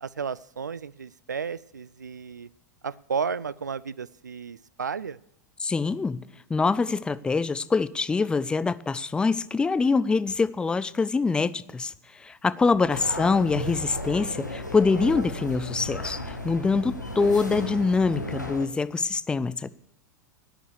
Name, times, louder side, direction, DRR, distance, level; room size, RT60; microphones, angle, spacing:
voice 1, 0.0-2.5 2.8-5.2 12.7-13.5, right 6 dB, 80° right, 0.4 m, -33 dB
voice 2, 5.6-11.9 12.2-19.7, left 4 dB, 10° left, 0.4 m, -24 dB
sound 1, 12.9-18.7, left 1 dB, 90° left, 1.3 m, -34 dB
11.0 x 9.3 x 8.1 m
figure-of-eight pair, 90°, 9 cm